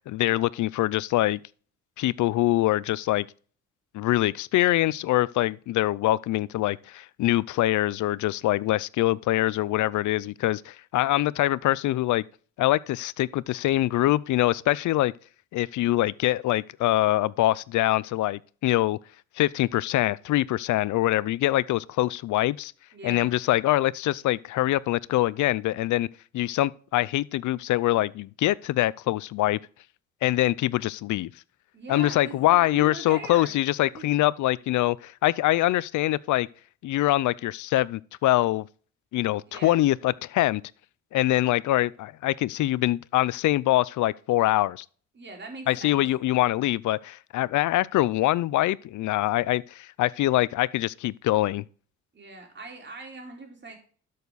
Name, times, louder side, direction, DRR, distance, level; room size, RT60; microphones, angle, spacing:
voice 1, 0.0-1.4 2.0-3.3 3.9-12.2 12.6-15.1 15.5-19.0 19.4-22.7 23.0-26.1 26.3-29.6 30.2-31.3 31.9-36.5 36.8-38.7 39.1-40.6 41.1-44.8 45.7-51.6, left 16 dB, 75° left, 0.6 m, -24 dB
voice 2, 22.9-23.3 31.7-33.5 33.9-34.1 39.5-39.8 45.1-46.0 52.1-53.7, right 3 dB, 35° right, 4.3 m, -41 dB
12.5 x 6.6 x 4.1 m
cardioid pair, 90°, 30 cm